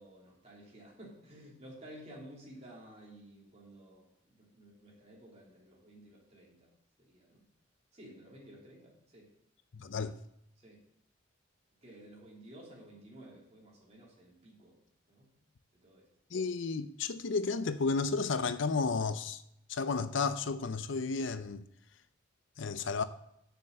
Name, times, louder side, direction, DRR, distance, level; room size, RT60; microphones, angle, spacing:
voice 1, 0.0-6.7 7.0-7.4 7.9-9.3 10.6-10.8 11.8-14.7 15.1-15.3 15.8-16.1, right 1 dB, 35° right, 3.0 m, -53 dB
voice 2, 9.7-10.2 16.3-19.4 19.7-22.0 22.6-23.0, left 4 dB, 65° left, 0.5 m, -33 dB
7.0 x 6.4 x 7.5 m
head